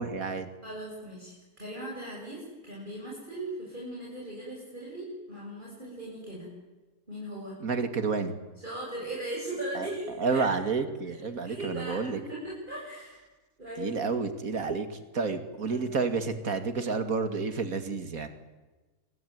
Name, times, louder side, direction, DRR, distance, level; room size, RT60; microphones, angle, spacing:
voice 1, 0.0-0.5 7.6-8.3 9.7-9.9 10.2-12.2 13.8-18.3, right 4 dB, 65° right, 9 dB, 2.8 m, -30 dB
voice 2, 0.6-6.5 7.1-7.6 8.6-10.5 11.0-11.2 11.4-13.2 13.6-14.1 15.7-15.9, right 1 dB, 30° right, -4 dB, 7.2 m, -39 dB
27.0 x 22.5 x 9.4 m, 1.2 s
omnidirectional pair, 1.6 m